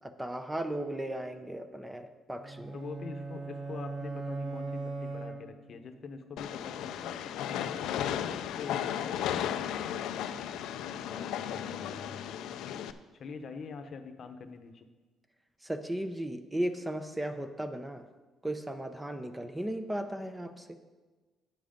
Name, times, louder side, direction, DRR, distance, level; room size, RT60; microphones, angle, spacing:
voice 1, 0.0-2.8 15.6-18.1 18.4-20.8, right 1 dB, 10° right, 8 dB, 0.6 m, -36 dB
sound 1, 2.4-5.9, right 3 dB, 45° right, 1.1 m, -39 dB
voice 2, 2.7-7.2 7.5-9.7 11.1-12.4 13.1-14.9, left 5 dB, 50° left, 8 dB, 0.8 m, -45 dB
Train, 6.4-12.9, left 10 dB, 85° left, 0.4 m, -35 dB
9.2 x 7.5 x 5.2 m, 1.3 s
cardioid pair, 125°, 0 cm